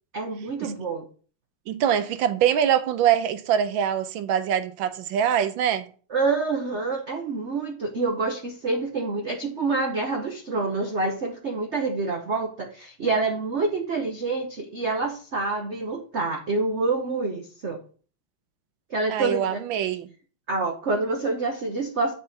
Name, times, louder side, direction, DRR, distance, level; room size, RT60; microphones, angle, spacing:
voice 1, 0.1-1.1 6.1-17.8 18.9-19.6 20.5-22.1, right 3 dB, 45° right, 0.9 m, -27 dB
voice 2, 1.7-5.9 19.1-20.1, right 9 dB, 75° right, 1.4 m, -23 dB
7.2 x 4.3 x 6.4 m
omnidirectional pair, 2.3 m